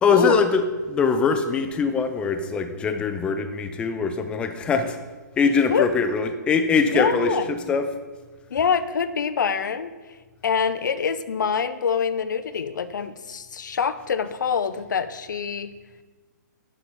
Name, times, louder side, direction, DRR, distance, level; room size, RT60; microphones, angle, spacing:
voice 1, 0.0-5.0 5.4-7.9, left 5 dB, 10° left, 7 dB, 0.5 m, -22 dB
voice 2, 6.9-7.5 8.5-9.9 10.4-15.7, left 6 dB, 80° left, 12 dB, 0.7 m, -25 dB
10.0 x 4.2 x 6.9 m, 1.3 s
hypercardioid pair, 150°, 10 cm